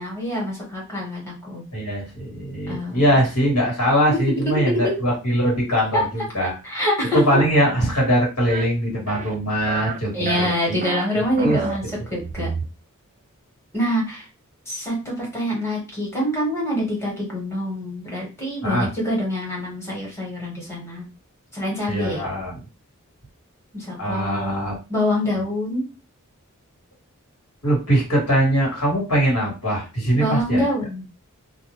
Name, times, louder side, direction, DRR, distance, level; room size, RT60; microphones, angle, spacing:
voice 1, 0.0-1.6 2.7-3.1 4.1-4.2 4.6-5.0 5.9-6.0 6.6-7.2 10.1-11.8 12.1-12.5 13.7-14.2 14.7-21.1 21.5-22.2 23.7-25.8 30.1-31.0, left 1 dB, 10° left, -4 dB, 1.3 m, -25 dB
voice 2, 1.7-6.6 7.1-10.9 11.1-11.6 18.6-18.9 21.9-22.6 24.0-24.8 25.3-25.4 27.6-30.6, equal, 80° left, -2 dB, 1.4 m, -22 dB
sound 1, 8.5-8.6 9.1-9.3 9.7-10.0 10.3-11.0 11.4-11.8, right 6 dB, 35° right, 0.3 m, -30 dB
2.4 x 2.3 x 3.0 m, 0.30 s
head